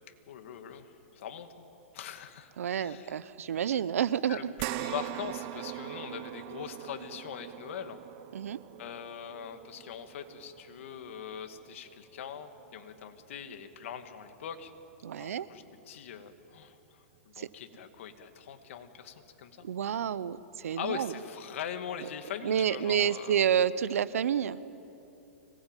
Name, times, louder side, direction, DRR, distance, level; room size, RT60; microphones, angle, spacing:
voice 1, 0.3-1.7 1.9-3.2 4.3-8.0 8.8-14.7 15.2-19.7 20.8-23.4, left 8 dB, 60° left, 7 dB, 2.3 m, -42 dB
voice 2, 2.6-4.5 8.3-8.6 15.0-15.5 17.4-17.5 19.6-21.1 22.4-24.6, right 9 dB, 80° right, 17 dB, 0.9 m, -29 dB
sound 1, 4.6-13.2 13.6-13.7 15.2-15.3, right 18 dB, 35° right, 0.6 m, -42 dB
25.5 x 19.5 x 9.2 m, 3.0 s
hypercardioid pair, 150°, 8 cm